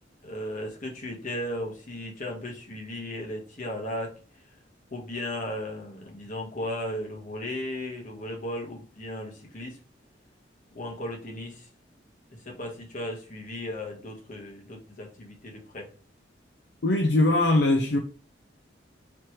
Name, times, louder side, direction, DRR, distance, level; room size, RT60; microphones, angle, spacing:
voice 1, 0.2-4.4 4.9-9.8 10.7-11.7 12.3-15.9, left 1 dB, 45° left, 1.3 m, -36 dB
voice 2, 16.8-18.0, left 2 dB, 65° left, 0.5 m, -21 dB
3.3 x 3.0 x 4.5 m
head